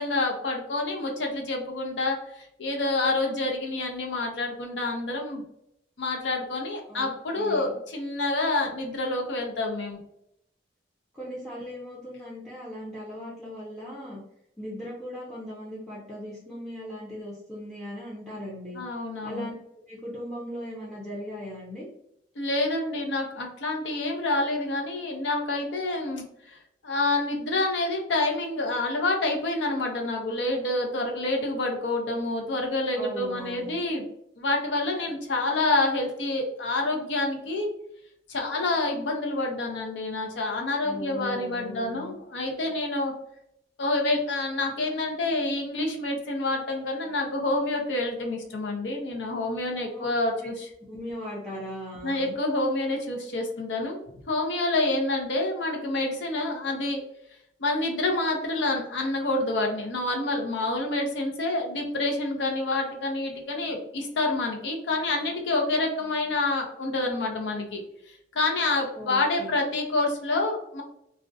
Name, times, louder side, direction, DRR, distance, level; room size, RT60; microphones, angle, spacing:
voice 1, 0.0-5.4 6.0-10.0 18.7-19.5 22.4-26.6 26.8-34.0 34.4-37.7 38.3-43.1 43.8-50.7 52.0-57.0 57.6-67.8 68.1-70.8, left 2 dB, 70° left, 1 dB, 0.6 m, -28 dB
voice 2, 7.4-7.7 11.1-14.2 14.6-18.8 19.2-19.5 19.9-21.9 32.9-33.8 40.8-42.1 49.9-50.1 50.4-50.5 50.9-52.4 68.9-69.5, equal, 5° left, -6 dB, 0.5 m, -38 dB
2.4 x 2.0 x 2.5 m, 0.76 s
head